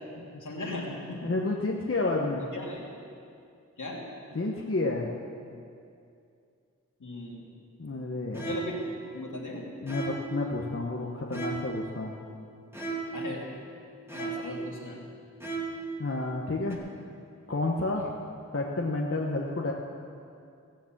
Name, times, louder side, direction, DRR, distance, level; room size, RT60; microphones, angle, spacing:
voice 1, 0.4-1.3 2.5-2.9 3.8-4.0 7.0-7.4 8.4-9.7 13.1-13.5 14.1-15.0 17.9-18.1, left 2 dB, 75° left, -2 dB, 2.6 m, -38 dB
voice 2, 1.2-2.5 4.3-5.1 7.8-8.6 9.8-12.1 16.0-16.8 17.5-18.1 18.5-19.7, left 2 dB, 45° left, -2 dB, 1.3 m, -30 dB
sound 1, 8.3-8.9 9.9-10.4 11.3-11.9 12.7-13.3 14.1-14.6 15.4-15.9 16.7-16.8, right 4 dB, 10° right, 2.8 m, -35 dB
18.0 x 7.2 x 7.5 m, 2.4 s
cardioid pair, 40°, 31 cm